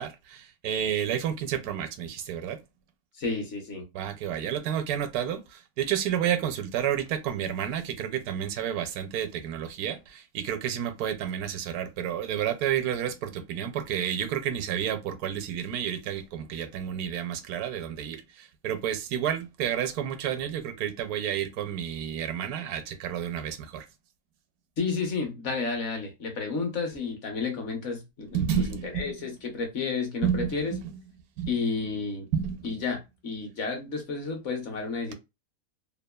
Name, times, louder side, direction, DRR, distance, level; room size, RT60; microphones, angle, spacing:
voice 1, 0.0-2.6 3.9-23.9 28.3-29.1 30.2-31.0 31.4-31.5 32.3-32.7, right 9 dB, 80° right, 1.1 m, -30 dB
voice 2, 3.2-3.9 24.8-30.8 31.5-32.3 32.6-35.1, left 4 dB, 60° left, 1.0 m, -31 dB
2.9 x 2.3 x 2.2 m
omnidirectional pair, 1.6 m